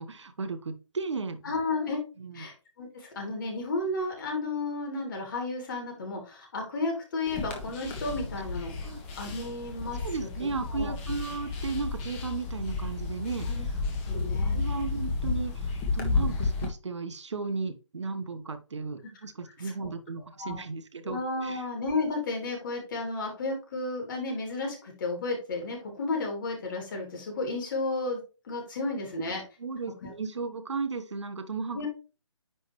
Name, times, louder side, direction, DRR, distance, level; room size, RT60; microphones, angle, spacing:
voice 1, 0.0-1.5 2.2-2.5 8.8-9.0 10.0-13.8 14.1-21.6 29.6-31.8, right 4 dB, 65° right, 8 dB, 1.2 m, -35 dB
voice 2, 1.4-2.0 2.3-8.7 9.2-10.9 13.5-13.7 14.1-14.6 19.0-19.1 19.6-19.9 20.4-20.6 21.0-29.4 30.0-30.1 31.7-31.9, left 3 dB, 40° left, 1 dB, 3.2 m, -33 dB
sound 1, 7.3-16.7, left 3 dB, 20° left, 1.5 m, -32 dB
9.9 x 3.8 x 3.1 m, 0.31 s
figure-of-eight pair, 145°, 16 cm